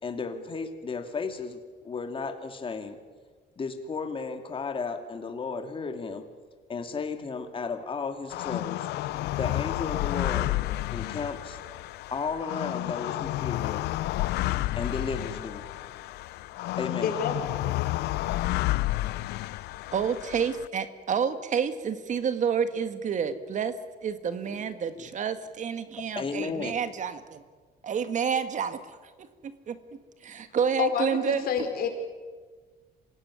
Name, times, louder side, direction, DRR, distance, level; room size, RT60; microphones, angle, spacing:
voice 1, 0.0-3.0 3.6-6.2 6.7-8.9 9.4-10.5 10.9-11.6 12.1-13.9 14.8-15.6 16.8-17.1 24.9-25.1 26.1-26.8, left 4 dB, 30° left, 6 dB, 2.6 m, -34 dB
sound 1, 8.3-20.7, left 16 dB, 80° left, 0.7 m, -31 dB
voice 2, 17.0-17.4 30.8-31.9, left 7 dB, 65° left, 4 dB, 5.0 m, -28 dB
voice 3, 19.9-23.7 24.0-27.4 27.8-28.8 29.4-31.5, right 7 dB, 45° right, 10 dB, 1.8 m, -29 dB
26.0 x 16.5 x 9.8 m, 1.5 s
cardioid pair, 110°, 17 cm